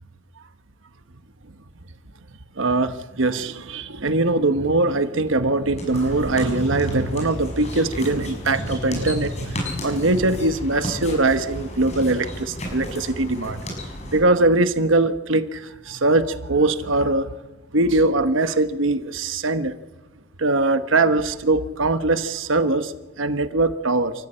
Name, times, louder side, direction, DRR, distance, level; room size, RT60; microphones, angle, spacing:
voice 1, 2.6-13.6 14.1-15.6 15.9-17.3 17.7-19.7 20.4-22.9 23.2-24.1, right 2 dB, 80° right, 10 dB, 1.1 m, -21 dB
sound 1, 5.6-14.2, equal, 35° left, 6.5 m, -33 dB
28.5 x 14.0 x 8.8 m, 1.1 s
head